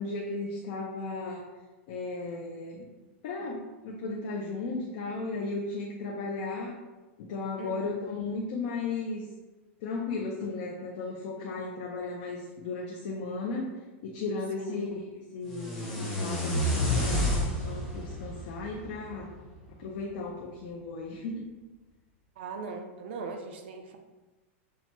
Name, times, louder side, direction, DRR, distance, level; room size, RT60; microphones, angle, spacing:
voice 1, 0.0-1.5 1.9-2.8 3.2-6.8 7.2-9.2 9.8-13.7 14.0-15.0 15.3-19.3 19.8-21.5, left 3 dB, 40° left, -1 dB, 0.4 m, -35 dB
voice 2, 7.6-8.2 14.6-14.8 20.0-20.2 22.4-24.0, right 4 dB, 50° right, 5 dB, 0.4 m, -40 dB
sound 1, 15.5-19.6, left 1 dB, 5° left, 0.7 m, -30 dB
5.7 x 2.1 x 2.9 m, 1.2 s
supercardioid pair, 180°, 7 cm